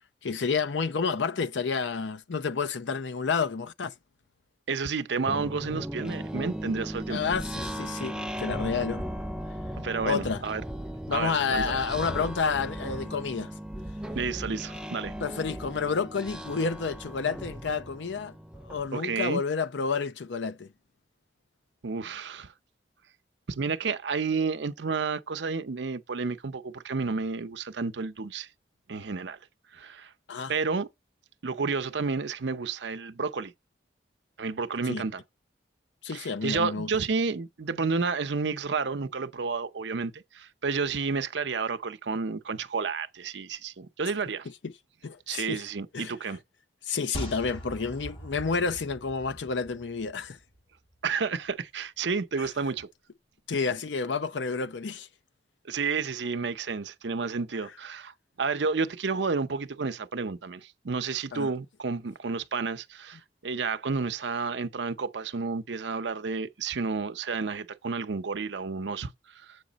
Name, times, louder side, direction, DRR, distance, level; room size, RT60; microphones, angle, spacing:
voice 1, 0.2-3.9 7.1-9.0 10.0-10.4 11.1-13.5 15.2-18.3 18.7-20.7 30.3-30.5 34.9-35.0 36.0-36.9 45.0-45.6 45.9-46.1 46.9-50.4 53.5-55.1 61.3-61.5, left 5 dB, 85° left, 0.6 m, -30 dB
voice 2, 4.7-7.2 9.8-10.6 11.1-11.8 14.1-15.1 18.9-19.4 21.8-22.5 23.5-28.5 28.9-29.4 29.7-30.1 30.5-30.9 31.4-33.5 34.4-35.2 36.1-44.5 45.3-46.4 51.0-52.9 55.6-69.6, right 4 dB, 75° right, 0.7 m, -31 dB
sound 1, 5.2-18.9, equal, 5° right, 0.3 m, -37 dB
sound 2, 47.1-50.6 50.9-51.0, right 1 dB, 30° left, 3.7 m, -41 dB
8.1 x 5.0 x 4.0 m
head